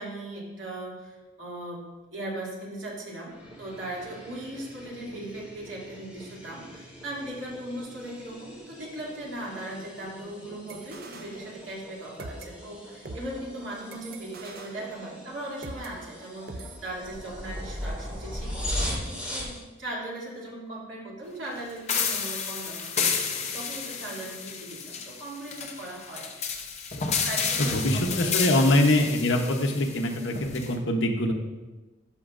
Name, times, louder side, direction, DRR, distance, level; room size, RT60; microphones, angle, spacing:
voice 1, 0.0-1.8 2.1-26.3 27.2-28.8, right 1 dB, 80° right, -5 dB, 2.7 m, -38 dB
sound 1, 3.3-19.6, equal, 10° right, 2.1 m, -39 dB
sound 2, 10.7-11.9 12.2-15.9 16.5-16.8, right 2 dB, 50° right, 0.6 m, -43 dB
sound 3, 21.9-30.7, left 6 dB, 35° left, 0.7 m, -31 dB
voice 2, 27.6-31.3, left 1 dB, 75° left, 2 dB, 0.9 m, -23 dB
13.0 x 6.2 x 2.6 m, 1.2 s
head